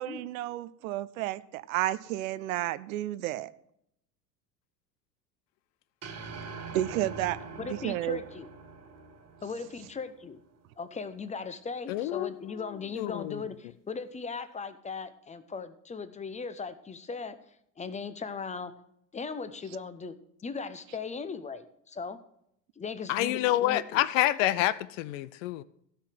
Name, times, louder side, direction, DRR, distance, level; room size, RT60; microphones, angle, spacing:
voice 1, 0.0-3.5 6.7-8.2, right 14 dB, 55° right, 16 dB, 0.7 m, -32 dB
sound 1, 6.0-10.4, right 4 dB, 30° right, 1.8 m, -44 dB
voice 2, 7.6-8.5 9.4-10.4 10.8-17.4 17.8-18.8 19.1-20.2 20.4-22.2 22.8-24.0, left 5 dB, 15° left, 13 dB, 0.8 m, -38 dB
voice 3, 11.9-12.3 13.0-13.4 23.1-25.6, left 15 dB, 50° left, 17 dB, 0.6 m, -27 dB
15.5 x 5.7 x 6.1 m, 0.73 s
figure-of-eight pair, 70°, 50 cm